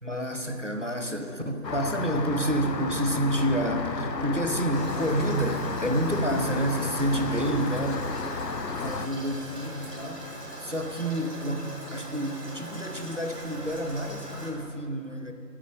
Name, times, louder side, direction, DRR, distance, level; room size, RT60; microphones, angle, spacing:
voice 1, 0.0-8.1 8.7-10.3 10.6-15.3, right 1 dB, 50° right, 5 dB, 0.7 m, -29 dB
Rain, 1.6-9.1, left 4 dB, 85° left, 0.8 m, -33 dB
Toilet flush, 4.7-14.5, right 1 dB, 70° right, 2.0 m, -41 dB
8.5 x 8.0 x 6.7 m, 2.5 s
figure-of-eight pair, 180°, 49 cm